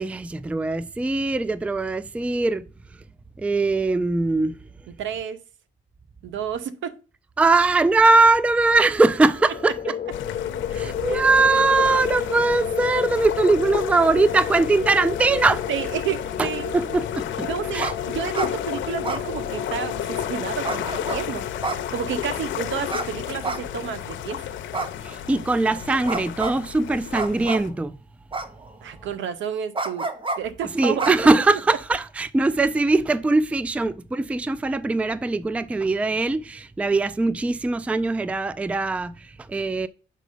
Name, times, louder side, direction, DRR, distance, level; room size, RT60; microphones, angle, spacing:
voice 1, 0.0-2.7 3.4-4.6 7.4-9.9 10.7-15.6 16.4-16.5 16.7-17.5 17.7-17.9 25.0-28.0 30.7-39.9, right 3 dB, 5° right, 0.3 m, -21 dB
voice 2, 5.0-5.4 6.2-7.0 10.7-11.2 15.7-16.7 17.5-21.5 21.9-24.4 28.8-30.1 30.4-31.2, right 8 dB, 75° right, 0.8 m, -31 dB
sound 1, 9.3-26.2, left 8 dB, 45° left, 1.0 m, -32 dB
sound 2, 10.1-27.7, left 11 dB, 75° left, 0.7 m, -33 dB
sound 3, 17.8-18.0 18.2-18.5 19.0-19.8 20.6-21.2 21.6-22.3 22.9-23.1 23.4-24.0 24.7-25.4 26.1-26.6 27.1-27.7 28.3-28.9 29.7-30.4 31.0-31.7, right 3 dB, 25° right, 0.9 m, -29 dB
6.5 x 3.9 x 5.0 m
cardioid pair, 90°, 20 cm